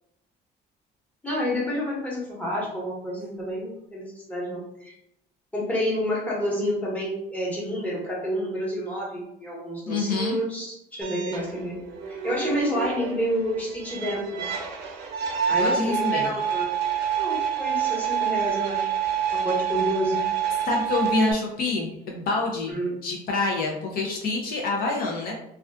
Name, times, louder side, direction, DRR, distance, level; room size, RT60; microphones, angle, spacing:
voice 1, 1.2-4.9 5.5-14.4 15.5-16.7 17.2-18.9 19.3-20.3 22.7-23.0, equal, 10° left, -5 dB, 1.0 m, -29 dB
voice 2, 9.9-10.4 15.6-16.3 20.7-25.4, left 3 dB, 60° left, 0 dB, 0.5 m, -27 dB
sound 1, 11.0-21.3, right 8 dB, 85° right, 0.5 m, -27 dB
2.4 x 2.3 x 2.3 m, 0.77 s
cardioid pair, 110°, 17 cm